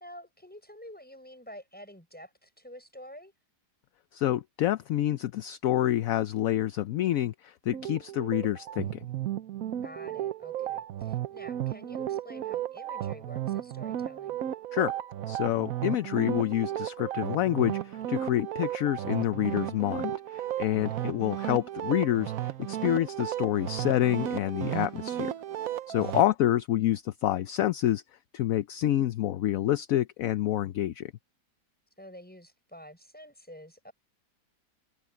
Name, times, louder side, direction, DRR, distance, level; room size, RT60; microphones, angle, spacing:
voice 1, 0.0-3.3 9.8-14.4 20.6-21.0 25.9-26.3 32.0-33.9, equal, 5° left, 6.7 m, -48 dB
voice 2, 4.1-9.0 14.7-14.9 15.3-22.3 22.7-25.3 25.9-28.0 28.3-31.1, left 13 dB, 65° left, 0.9 m, -27 dB
sound 1, 7.7-26.2, right 12 dB, 60° right, 1.1 m, -34 dB
omnidirectional pair, 1.9 m